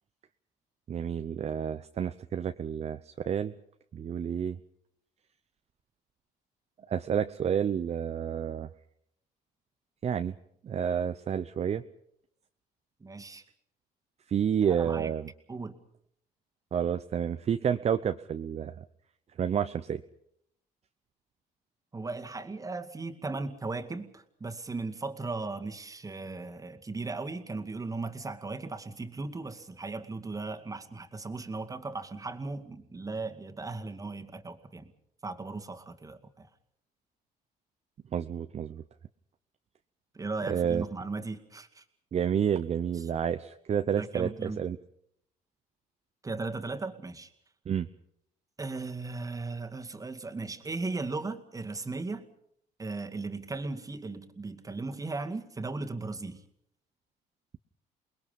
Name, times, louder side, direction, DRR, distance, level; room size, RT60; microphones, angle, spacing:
voice 1, 0.9-3.5 3.9-4.6 6.9-8.7 10.0-10.3 10.6-11.8 14.3-15.3 16.7-18.7 19.4-20.0 38.1-38.8 40.5-40.8 42.1-44.8 47.7-47.9, right 8 dB, 40° right, 9 dB, 0.8 m, -30 dB
voice 2, 13.0-13.4 14.6-15.1 15.5-15.8 21.9-34.9 35.2-36.5 40.1-41.8 42.9-43.1 43.9-44.6 46.2-47.3 48.6-52.3 52.8-56.4, right 3 dB, 20° right, 5 dB, 2.2 m, -37 dB
28.5 x 21.0 x 5.4 m, 0.71 s
cardioid pair, 110°, 17 cm